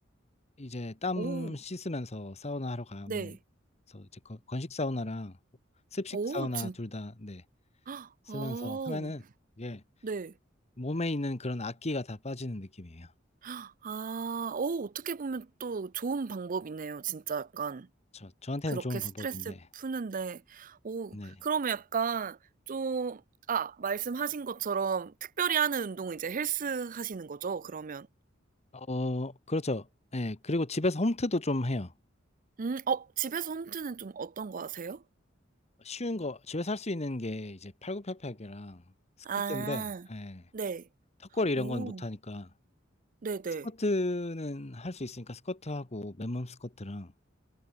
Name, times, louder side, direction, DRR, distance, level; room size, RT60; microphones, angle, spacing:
voice 1, 0.6-3.3 3.9-5.4 5.9-7.4 8.3-9.2 9.6-9.8 10.8-13.1 18.1-19.6 21.1-21.3 28.7-29.9 30.1-31.9 35.8-38.8 39.5-39.8 40.1-40.4 41.3-42.5 43.8-47.1, left 2 dB, 35° left, 1.4 m, -34 dB
voice 2, 1.2-1.6 3.1-3.4 6.1-6.7 7.9-9.1 10.0-10.3 13.4-17.9 18.7-22.4 22.7-23.2 23.5-28.1 32.6-35.0 39.2-40.1 40.5-40.9 41.6-42.0 43.2-43.7, right 6 dB, 45° right, 0.5 m, -34 dB
head